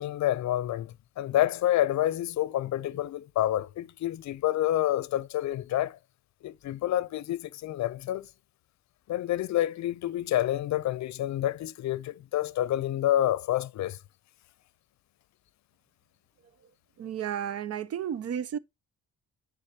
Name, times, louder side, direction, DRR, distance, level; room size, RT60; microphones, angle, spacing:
voice 1, 0.0-6.0 6.4-8.3 9.1-14.0, left 13 dB, 65° left, 0.6 m, -28 dB
voice 2, 17.0-18.6, right 9 dB, 55° right, 0.6 m, -32 dB
9.9 x 3.8 x 2.8 m
cardioid pair, 90°, 30 cm